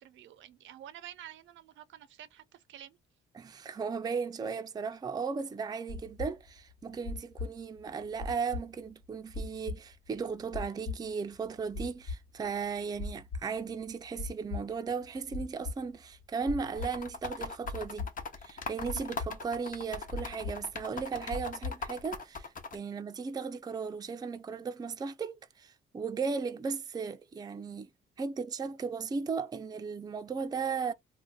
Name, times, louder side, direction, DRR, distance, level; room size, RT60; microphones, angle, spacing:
voice 1, 0.0-3.0 22.9-23.0, right 11 dB, 75° right, 0.5 m, -50 dB
voice 2, 3.3-18.1 18.4-27.9 28.2-30.9, right 5 dB, 20° right, 0.4 m, -36 dB
sound 1, 5.9-22.0, left 3 dB, 65° left, 1.0 m, -39 dB
sound 2, 16.7-22.8, left 4 dB, 40° left, 0.7 m, -40 dB
2.6 x 2.1 x 3.8 m
cardioid pair, 90°, 20 cm